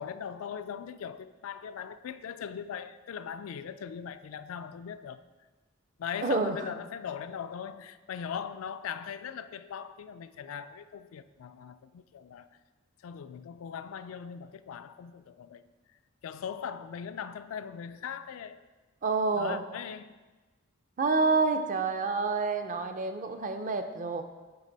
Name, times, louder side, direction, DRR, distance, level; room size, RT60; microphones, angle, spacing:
voice 1, 0.0-5.2 6.0-12.6 13.0-15.7 16.2-18.6 19.3-20.1, left 7 dB, 75° left, 12 dB, 0.3 m, -40 dB
voice 2, 6.2-6.7 19.0-19.6 21.0-24.2, right 3 dB, 40° right, 7 dB, 0.5 m, -28 dB
9.6 x 3.3 x 5.1 m, 1.3 s
head